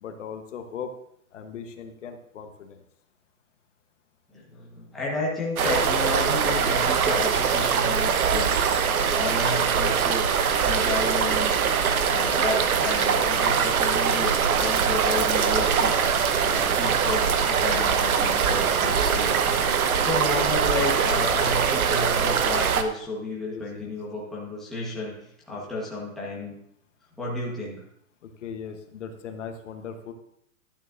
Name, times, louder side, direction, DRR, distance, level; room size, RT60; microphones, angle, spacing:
voice 1, 0.0-0.9 1.3-2.8 23.5-23.9 25.5-25.7 28.2-30.1, left 6 dB, 55° left, 7 dB, 1.1 m, -38 dB
voice 2, 4.3-8.6 9.1-10.3 10.6-11.6 12.0-25.2 25.5-26.5 27.2-27.8, left 2 dB, ahead, -6 dB, 1.2 m, -32 dB
sound 1, 5.6-22.8, right 6 dB, 80° right, 1.1 m, -22 dB
12.0 x 8.7 x 2.6 m, 0.72 s
hypercardioid pair, 165°, 42 cm